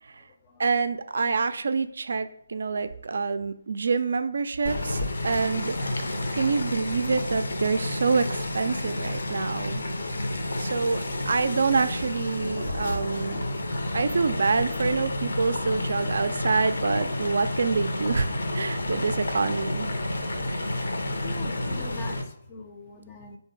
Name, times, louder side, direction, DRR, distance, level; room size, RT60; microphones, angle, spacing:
voice 1, 0.6-9.8 10.6-13.5 13.9-18.3 18.5-20.0, right 4 dB, 60° right, 11 dB, 0.3 m, -26 dB
sound 1, 4.6-22.2, left 1 dB, 65° left, 0.6 m, -30 dB
voice 2, 20.8-23.4, left 3 dB, 25° left, 4 dB, 0.4 m, -43 dB
3.6 x 2.7 x 4.5 m, 0.67 s
figure-of-eight pair, 150°, 0 cm